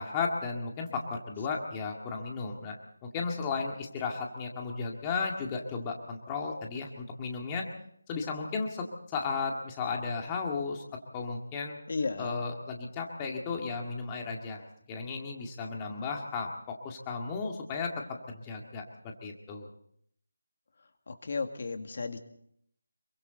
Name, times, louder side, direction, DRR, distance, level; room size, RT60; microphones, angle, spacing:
voice 1, 0.0-2.8 3.0-7.7 8.1-10.8 11.1-11.8 12.2-14.6 14.9-16.5 16.8-17.9 18.3-19.7, left 4 dB, 15° left, 1 dB, 2.0 m, -34 dB
voice 2, 11.9-12.4 21.1-22.2, left 4 dB, 50° left, 7 dB, 2.0 m, -34 dB
27.0 x 24.0 x 4.0 m, 0.68 s
figure-of-eight pair, 170°, 0 cm